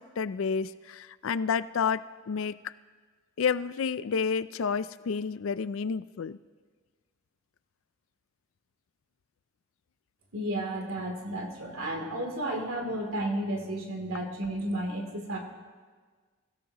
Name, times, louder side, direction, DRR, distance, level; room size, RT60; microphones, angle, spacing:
voice 1, 0.2-2.6 3.4-6.4, left 6 dB, 65° left, 15 dB, 0.4 m, -30 dB
voice 2, 10.3-15.4, right 1 dB, 75° right, 1 dB, 2.9 m, -32 dB
26.5 x 16.5 x 3.0 m, 1.5 s
head